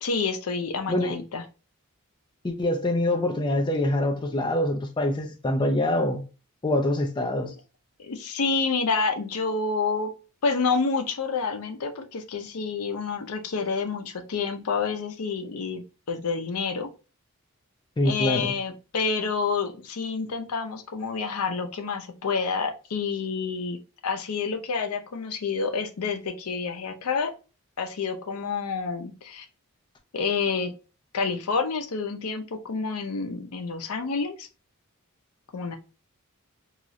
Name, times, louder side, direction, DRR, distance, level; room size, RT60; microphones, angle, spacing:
voice 1, 0.0-1.4 8.0-10.1 10.4-15.8 16.1-16.9 18.0-23.8 24.0-27.3 27.8-29.5 30.1-30.7 31.1-34.5 35.5-35.8, left 4 dB, 80° left, 0.5 m, -28 dB
voice 2, 2.4-6.2 6.6-7.5 18.0-18.5, left 1 dB, 20° left, 0.4 m, -25 dB
3.0 x 2.4 x 2.6 m
head